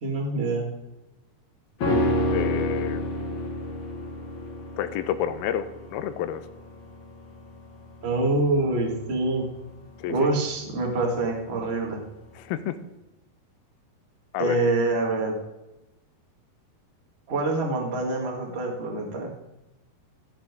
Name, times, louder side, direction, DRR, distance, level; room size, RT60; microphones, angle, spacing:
voice 1, 0.0-0.7 8.0-9.5 10.1-12.0 14.4-15.3 17.3-19.3, right 2 dB, 40° right, 0 dB, 0.9 m, -25 dB
sound 1, 1.8-11.2 11.5-11.6, left 1 dB, 45° left, 1.7 m, -30 dB
voice 2, 2.3-3.0 4.8-6.4 10.0-10.3 12.4-12.8 14.3-14.6, left 10 dB, 85° left, 12 dB, 2.4 m, -29 dB
15.5 x 7.7 x 3.7 m, 0.97 s
omnidirectional pair, 4.5 m